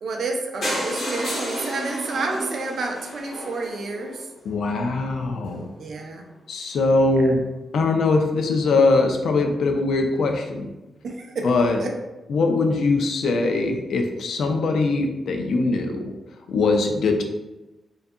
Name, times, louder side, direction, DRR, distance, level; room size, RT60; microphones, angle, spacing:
voice 1, 0.0-4.3 5.8-6.3 7.1-7.2 11.0-11.5 11.8-11.9, right 3 dB, 55° right, 2 dB, 0.3 m, -30 dB
sound 1, 0.6-4.5 5.1-5.2 5.5-5.6 5.9-6.0 6.1-6.2, equal, 60° left, 1.0 m, -31 dB
voice 2, 4.4-5.7 6.5-7.4 7.7-10.7 11.4-11.8 12.3-16.1 16.5-17.2, left 3 dB, 80° left, 4 dB, 0.3 m, -21 dB
2.6 x 2.3 x 2.4 m, 1.0 s
wide cardioid pair, 150°, 0 cm